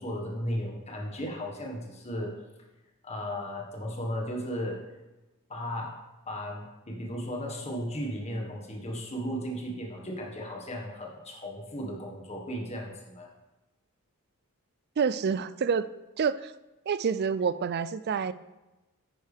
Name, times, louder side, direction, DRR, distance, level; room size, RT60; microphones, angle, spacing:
voice 1, 0.0-2.3 3.0-4.8 5.5-5.9 6.3-13.3, equal, 30° left, -1 dB, 1.5 m, -35 dB
voice 2, 15.0-15.9 16.2-16.5 16.9-18.3, right 6 dB, 45° right, 15 dB, 0.4 m, -27 dB
10.0 x 9.0 x 3.4 m, 1.1 s
head